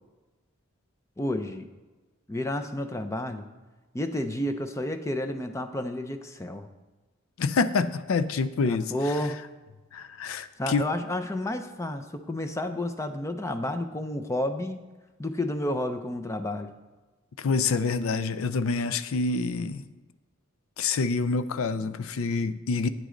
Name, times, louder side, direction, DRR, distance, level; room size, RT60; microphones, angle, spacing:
voice 1, 1.2-1.7 2.3-3.5 3.9-6.7 8.6-9.4 10.6-14.8 15.2-16.7, left 1 dB, 15° left, 8 dB, 0.5 m, -31 dB
voice 2, 7.4-9.2 9.9-10.9 17.4-19.8 20.8-22.9, left 4 dB, 80° left, 13 dB, 0.4 m, -27 dB
8.9 x 8.1 x 3.8 m, 1.2 s
head